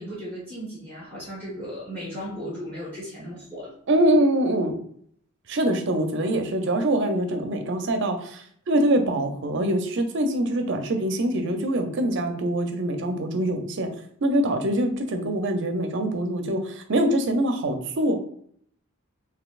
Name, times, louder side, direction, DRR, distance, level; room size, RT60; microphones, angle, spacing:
voice 1, 0.0-3.7, equal, 10° left, -7 dB, 1.2 m, -36 dB
voice 2, 3.9-4.8 5.5-13.9 14.2-18.1, right 1 dB, 55° right, 6 dB, 0.5 m, -24 dB
4.0 x 2.7 x 2.4 m, 0.64 s
head